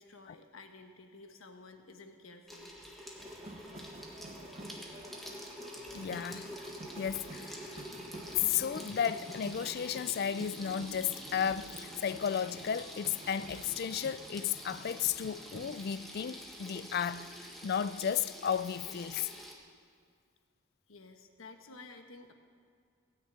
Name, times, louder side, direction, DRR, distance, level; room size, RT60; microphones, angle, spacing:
voice 1, 0.0-2.7 20.9-22.3, left 3 dB, 85° left, 1.3 m, -52 dB
Water tap faucet / Sink (filling or washing), 2.5-19.5, equal, ahead, 1.5 m, -47 dB
sound 1, 3.2-15.9, right 1 dB, 30° right, 1.1 m, -51 dB
voice 2, 5.9-6.7 7.0-7.8 8.3-19.3, left 8 dB, 50° left, 0.3 m, -34 dB
17.0 x 6.6 x 8.9 m
head